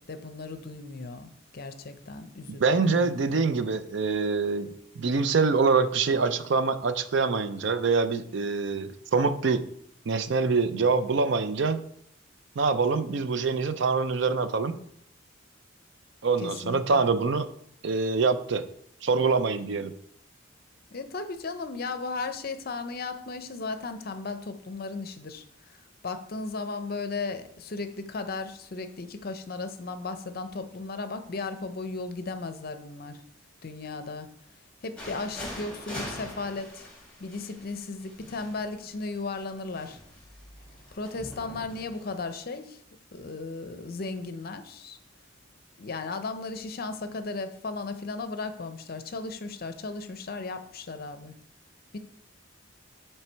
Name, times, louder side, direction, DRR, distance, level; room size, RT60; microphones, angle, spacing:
voice 1, 0.0-3.4 16.4-17.0 20.9-33.2 33.6-34.3 34.8-36.9 37.2-40.0 40.9-42.8 43.1-45.0 45.8-51.3 51.9-52.0, left 3 dB, 45° left, 9 dB, 0.6 m, -36 dB
voice 2, 2.5-4.7 4.9-9.6 10.1-11.8 12.6-14.8 16.2-17.5 17.8-18.6 19.0-19.9, right 4 dB, 60° right, 10 dB, 0.5 m, -25 dB
sound 1, 35.0-42.2, left 1 dB, 5° left, 2.0 m, -43 dB
8.9 x 3.3 x 4.5 m, 0.68 s
head